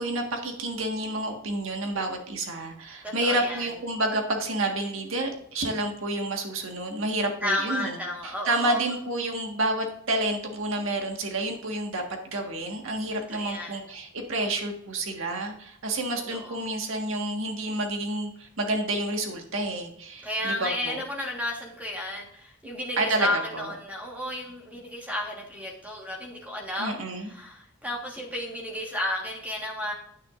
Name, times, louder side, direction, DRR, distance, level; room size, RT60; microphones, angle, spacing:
voice 1, 0.0-8.0 8.2-21.0 23.0-23.7 26.8-27.3, right 2 dB, 80° right, 3 dB, 1.6 m, -29 dB
voice 2, 3.0-3.7 7.4-8.8 13.3-13.8 16.3-16.6 20.2-27.0 27.3-29.9, left 1 dB, 10° right, -2 dB, 1.4 m, -32 dB
9.4 x 9.4 x 2.5 m, 0.70 s
head